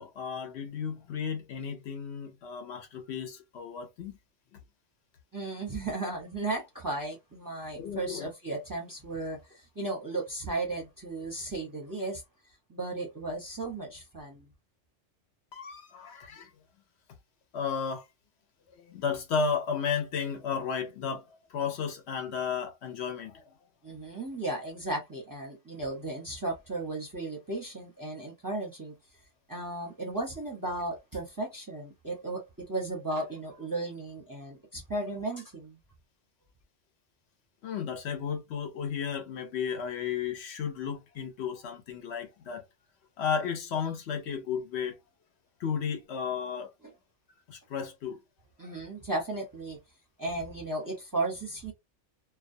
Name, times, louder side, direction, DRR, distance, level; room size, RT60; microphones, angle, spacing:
voice 1, 0.0-4.2 7.7-8.3 15.5-16.5 17.5-18.0 18.7-23.6 24.0-24.2 37.6-42.6 43.2-45.0 45.6-46.7 47.5-48.2, left 6 dB, 65° left, 0.8 m, -33 dB
voice 2, 5.3-12.2 12.7-14.5 23.8-28.9 29.5-35.8 48.6-49.8 50.2-51.7, right 2 dB, 20° right, 0.6 m, -35 dB
2.3 x 2.3 x 2.6 m
omnidirectional pair, 1.2 m